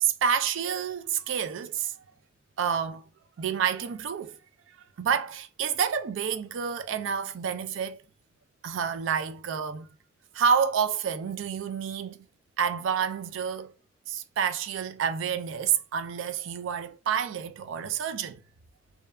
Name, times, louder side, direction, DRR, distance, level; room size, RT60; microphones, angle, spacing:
voice 1, 0.0-2.0 2.6-3.0 3.4-4.4 4.7-8.0 8.6-9.9 10.3-12.2 12.6-13.7 14.1-18.4, right 7 dB, 80° right, 0.3 m, -29 dB
2.6 x 2.2 x 2.3 m
head